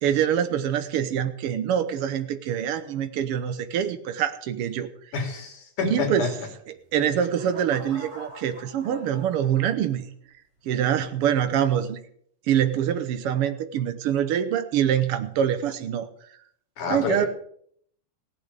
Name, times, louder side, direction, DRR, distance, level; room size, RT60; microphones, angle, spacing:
voice 1, 0.0-4.9 5.8-6.3 6.9-10.0 10.7-12.0 12.5-16.1 16.9-17.3, right 9 dB, 80° right, 9 dB, 1.2 m, -25 dB
voice 2, 5.1-6.5 16.8-17.3, left 4 dB, 70° left, 3 dB, 4.2 m, -28 dB
sound 1, 6.7-10.2 10.8-11.1, right 1 dB, 20° right, 5.9 m, -45 dB
17.0 x 8.5 x 6.7 m, 0.65 s
omnidirectional pair, 3.8 m